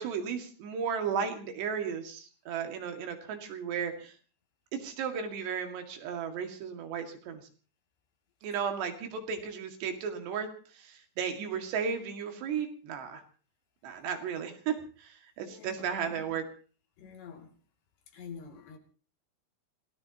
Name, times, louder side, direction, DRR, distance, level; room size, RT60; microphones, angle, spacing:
voice 1, 0.0-4.1 4.7-7.4 8.4-10.5 10.7-13.2 13.8-16.4, right 7 dB, 85° right, 4.3 m, -34 dB
voice 2, 15.5-16.2 17.0-17.6 18.1-18.8, left 6 dB, 80° left, 4.8 m, -47 dB
27.5 x 18.0 x 2.9 m
omnidirectional pair, 4.8 m